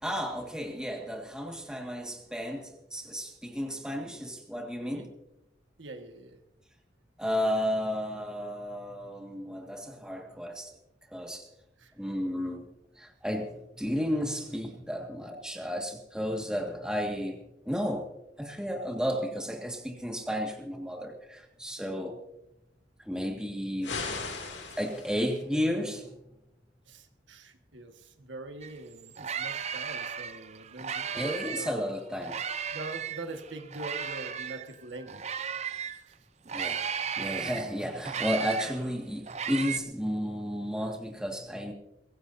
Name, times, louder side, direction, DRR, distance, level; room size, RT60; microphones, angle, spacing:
voice 1, 0.0-5.1 7.2-10.7 11.1-11.5 12.0-12.7 13.0-18.1 18.4-22.2 23.0-24.0 24.8-26.1 31.1-32.4 36.5-36.8 37.2-41.7, equal, 5° right, 2 dB, 1.8 m, -33 dB
voice 2, 5.8-6.4 11.8-11.9 26.9-31.9 32.7-35.4 35.9-36.1, right 2 dB, 80° right, 5 dB, 1.6 m, -43 dB
sound 1, 23.8-25.4, left 4 dB, 75° left, 2.6 m, -37 dB
sound 2, 28.6-28.7 29.0-31.8 32.2-36.0 36.5-39.8, right 7 dB, 35° right, 0.6 m, -35 dB
22.5 x 16.0 x 2.7 m, 0.89 s
head